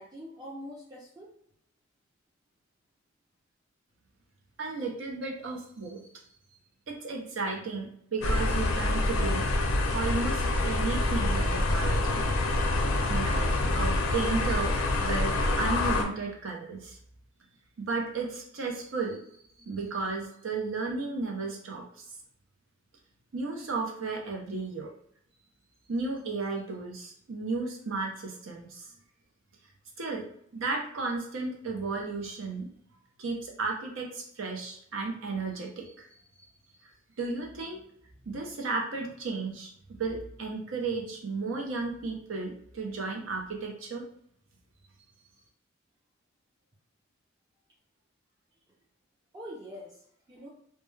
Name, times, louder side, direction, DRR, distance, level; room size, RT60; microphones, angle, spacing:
voice 1, 0.0-1.3 49.3-50.5, equal, 20° right, -7 dB, 0.5 m, -44 dB
voice 2, 4.6-6.0 6.9-9.4 9.9-12.2 13.1-14.7 15.0-17.0 17.8-19.2 19.6-22.0 23.3-24.9 25.9-28.9 30.0-30.2 30.5-32.7 33.2-36.1 37.2-37.8 38.2-39.7 40.0-44.0, right 3 dB, 70° right, 1 dB, 0.6 m, -34 dB
sound 1, 8.2-16.0, left 2 dB, 80° left, 0.5 m, -26 dB
2.2 x 2.1 x 3.1 m, 0.69 s
head